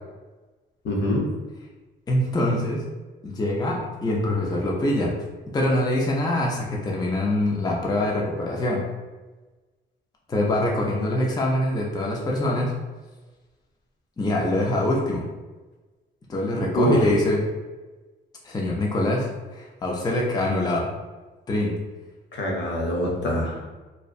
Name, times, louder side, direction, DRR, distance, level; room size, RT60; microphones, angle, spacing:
voice 1, 0.8-1.3 16.7-17.1 22.3-23.6, left 1 dB, 65° left, -1 dB, 0.6 m, -24 dB
voice 2, 2.1-2.8 3.2-5.1 5.5-8.9 10.3-12.7 14.2-15.3 16.3-17.5 18.4-20.9 21.5-21.8, left 1 dB, 20° left, -2 dB, 0.4 m, -24 dB
2.6 x 2.0 x 2.4 m, 1.2 s
cardioid pair, 90°, 20 cm